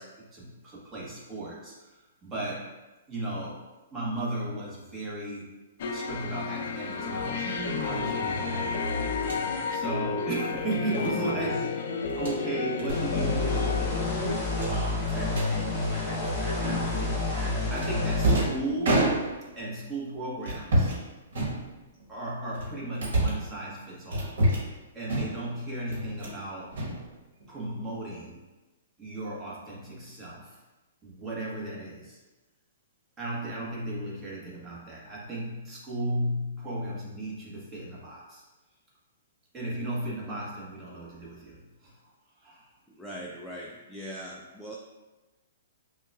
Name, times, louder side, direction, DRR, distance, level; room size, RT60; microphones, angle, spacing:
voice 1, 0.0-2.7 3.1-3.7 3.9-5.6 5.9-8.9 9.7-11.8 12.2-14.1 14.7-19.0 19.6-20.9 22.1-24.4 24.9-26.8 27.5-28.4 29.0-30.6 31.0-32.2 33.2-38.4 39.5-42.0 42.4-42.7, right 1 dB, 20° right, -5 dB, 1.2 m, -35 dB
sound 1, 5.8-14.4, left 4 dB, 60° left, 0.5 m, -31 dB
sound 2, 9.2-9.5 10.9-11.1 12.0-12.4 12.8-13.0 13.3-13.5 13.8-13.9 14.5-15.5 16.6-17.1 17.7-19.6 20.4-21.0 21.3-22.0 22.5-23.5 24.1-24.8 25.1-25.5 25.9-26.4 26.7-27.6, right 1 dB, 65° right, 1.2 m, -28 dB
sound 3, 12.9-18.4, left 3 dB, 20° left, 1.2 m, -29 dB
voice 2, 42.9-44.8, equal, ahead, -5 dB, 0.4 m, -41 dB
5.7 x 2.3 x 2.4 m, 1.1 s
hypercardioid pair, 130°, 0 cm